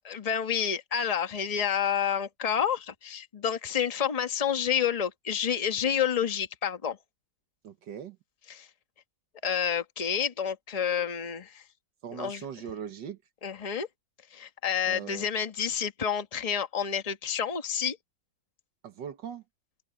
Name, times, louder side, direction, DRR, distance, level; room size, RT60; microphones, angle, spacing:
voice 1, 0.0-7.0 8.5-8.7 9.4-11.6 12.1-12.4 13.4-13.9 14.3-18.0, left 8 dB, 25° left, 1.1 m, -29 dB
voice 2, 7.6-8.2 12.0-13.2 14.9-15.3 18.8-19.4, right 8 dB, 65° right, 1.7 m, -40 dB
open air
omnidirectional pair, 2.1 m